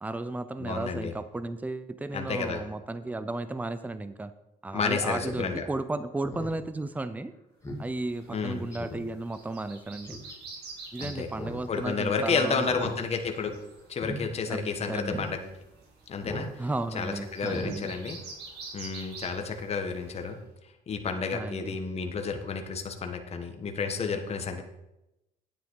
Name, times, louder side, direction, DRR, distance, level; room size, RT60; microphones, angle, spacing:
voice 1, 0.0-4.3 4.6-7.3 7.8-10.2 10.9-12.9 14.5-15.2 16.6-18.0 21.3-21.8, right 2 dB, 10° right, 13 dB, 0.6 m, -34 dB
voice 2, 0.6-1.1 2.1-2.6 4.7-5.7 8.3-8.6 11.0-11.3 11.7-13.5 13.9-15.4 16.1-16.5 17.0-18.2 18.7-20.4 20.9-24.6, left 5 dB, 40° left, 5 dB, 1.6 m, -31 dB
Speech synthesizer, 5.2-5.4 5.8-5.9 6.2-6.6 7.0-7.1 7.6-7.8 8.2-8.3 8.7-9.1 10.0-10.3 11.3-11.7 11.9-12.0 12.6-13.0 13.2-13.5 13.9-14.2 14.6-14.7 15.1-15.3 16.2-16.5 16.8-17.0 17.4-17.7 18.1-18.2, equal, 15° left, 2.3 m, -39 dB
sound 1, 7.9-20.4, right 3 dB, 75° right, 2.9 m, -48 dB
9.7 x 9.7 x 4.8 m, 0.91 s
cardioid pair, 110°, 17 cm